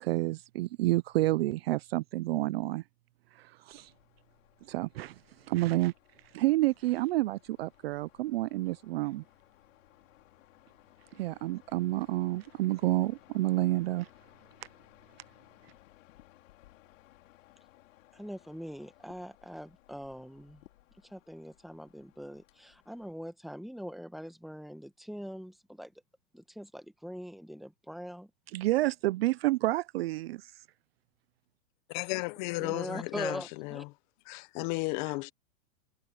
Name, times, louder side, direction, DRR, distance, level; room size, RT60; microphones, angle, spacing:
voice 1, 0.0-2.8 3.3-3.9 4.7-5.2 5.5-5.9 6.3-9.2 11.1-14.1 28.5-30.5, right 17 dB, 50° right, 0.5 m, -29 dB
sound 1, 3.7-23.1, left 16 dB, 65° left, 3.4 m, -61 dB
voice 2, 18.1-20.6 21.0-25.9 26.3-28.3 32.6-33.8, equal, ahead, 1.2 m, -42 dB
voice 3, 31.9-33.9 34.3-35.3, left 24 dB, 35° left, 0.8 m, -34 dB
supercardioid pair, 150°, 41 cm